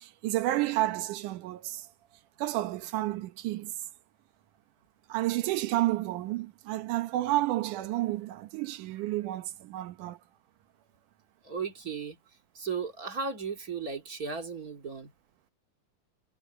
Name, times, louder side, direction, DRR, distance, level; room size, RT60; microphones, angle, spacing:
voice 1, 0.0-1.9 2.4-3.7 5.1-10.2, right 16 dB, 80° right, 2.4 m, -30 dB
voice 2, 11.4-12.2 12.5-15.1, right 5 dB, 30° right, 2.4 m, -35 dB
omnidirectional pair, 3.6 m